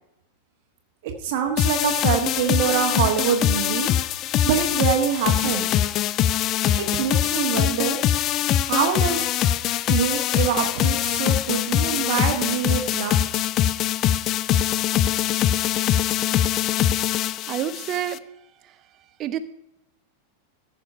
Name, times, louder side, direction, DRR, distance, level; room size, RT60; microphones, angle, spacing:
voice 1, 1.0-3.9 4.5-5.7 7.0-8.0 8.4-9.2 9.9-13.2, right 8 dB, 50° right, 3 dB, 1.3 m, -25 dB
sound 1, 1.6-18.2, left 11 dB, 35° left, 0.4 m, -23 dB
voice 2, 17.1-18.2 18.6-18.8 19.2-19.4, right 11 dB, 35° right, 11 dB, 0.8 m, -29 dB
15.0 x 5.0 x 5.6 m, 0.83 s
figure-of-eight pair, 90°, 0 cm